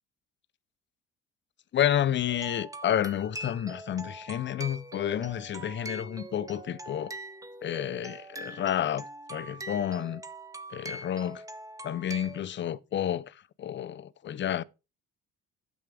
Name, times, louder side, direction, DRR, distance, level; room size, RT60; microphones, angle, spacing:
voice 1, 1.7-7.1 7.6-9.0 9.3-10.2 10.7-11.4 11.8-14.6, left 10 dB, 40° left, 0.6 m, -30 dB
sound 1, 2.3-12.4, right 1 dB, 10° right, 1.0 m, -43 dB
9.2 x 7.2 x 3.4 m
supercardioid pair, 85°, 30 cm